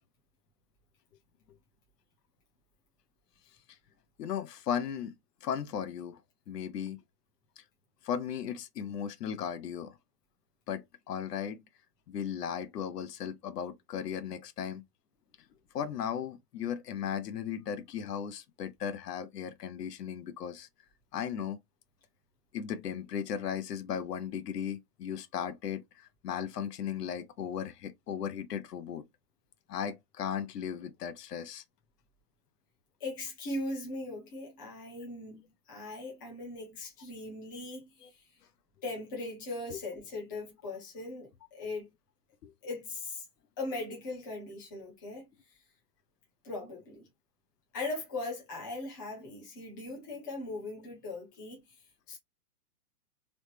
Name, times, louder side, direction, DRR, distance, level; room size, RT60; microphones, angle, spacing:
voice 1, 4.2-5.1 5.4-6.2 6.5-7.0 7.6-7.7 8.0-10.0 10.7-11.6 12.1-14.8 15.7-20.7 21.1-21.6 22.5-29.1 29.7-31.6 38.0-38.1 42.4-42.5, left 8 dB, 80° left, 0.7 m, -36 dB
voice 2, 33.0-35.4 35.7-38.2 38.8-41.9 42.6-43.3 43.6-45.3 46.4-47.1 47.7-51.6 52.1-52.2, left 2 dB, 15° left, 0.5 m, -39 dB
3.1 x 2.0 x 3.0 m
hypercardioid pair, 165°, 48 cm